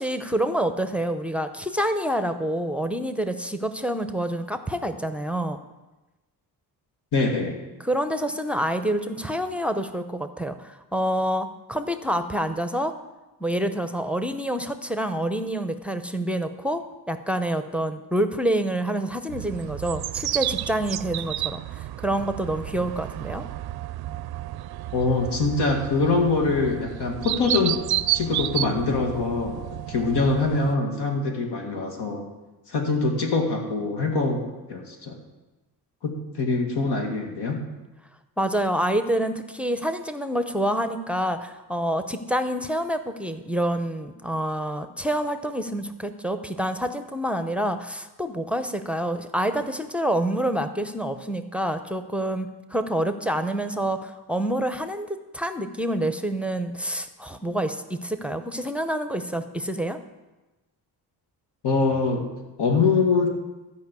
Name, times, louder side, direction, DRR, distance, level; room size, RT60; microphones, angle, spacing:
voice 1, 0.0-5.6 7.8-12.9 13.4-16.8 17.1-23.5 38.4-60.0, right 1 dB, 5° right, 8 dB, 0.7 m, -27 dB
voice 2, 7.1-7.6 24.9-27.8 28.1-32.2 32.7-34.4 34.7-35.2 36.0-37.6 61.6-62.2 62.6-63.3, left 3 dB, 70° left, 2 dB, 2.2 m, -24 dB
sound 1, 19.3-30.7, right 14 dB, 65° right, 0.5 m, -31 dB
13.0 x 5.5 x 8.3 m, 1.1 s
cardioid pair, 105°, 41 cm